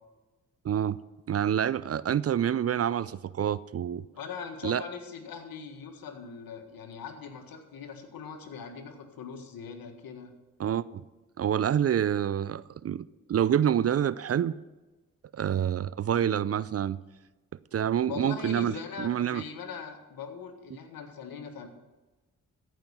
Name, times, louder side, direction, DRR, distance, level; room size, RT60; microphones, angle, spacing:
voice 1, 0.6-1.0 1.3-4.0 4.6-4.8 10.6-11.0 11.4-14.5 15.3-17.0 17.7-19.4, right 9 dB, 40° right, 18 dB, 0.5 m, -27 dB
voice 2, 4.1-10.3 18.1-21.7, left 6 dB, 70° left, 6 dB, 1.7 m, -41 dB
14.0 x 5.8 x 7.2 m, 1.2 s
supercardioid pair, 45°, 36 cm